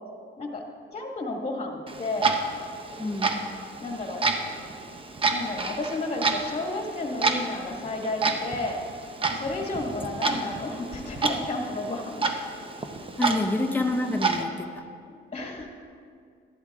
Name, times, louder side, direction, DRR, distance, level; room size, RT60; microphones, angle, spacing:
voice 1, 0.9-2.3 3.8-4.2 5.3-8.8 9.4-12.3 13.2-13.4 15.3-15.7, left 2 dB, 30° left, 1 dB, 1.6 m, -32 dB
Clock, 1.9-14.4, right 4 dB, 25° right, 0.7 m, -30 dB
voice 2, 3.0-3.4 13.2-14.9, left 2 dB, 10° left, 2 dB, 0.9 m, -27 dB
12.5 x 11.5 x 2.4 m, 2.2 s
cardioid pair, 90°, 20 cm